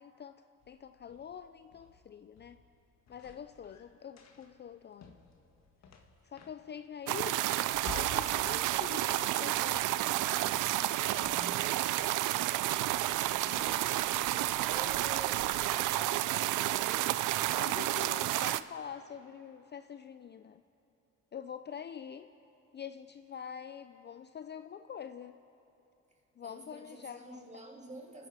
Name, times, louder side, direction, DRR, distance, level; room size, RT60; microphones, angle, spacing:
voice 1, 0.0-2.6 3.1-5.1 6.2-7.5 7.9-9.9 10.2-10.6 13.5-13.7 17.5-20.6 21.3-22.3 22.7-25.4 26.4-27.4, left 8 dB, 35° left, 0.4 m, -45 dB
sound 1, 0.6-12.1, left 6 dB, 60° left, 1.6 m, -52 dB
sound 2, 7.1-18.6, right 15 dB, 85° right, 0.5 m, -31 dB
voice 2, 11.0-11.8 13.4-17.3 26.4-28.3, right 1 dB, 25° right, 2.3 m, -49 dB
29.0 x 10.0 x 4.9 m
cardioid pair, 90°, 30 cm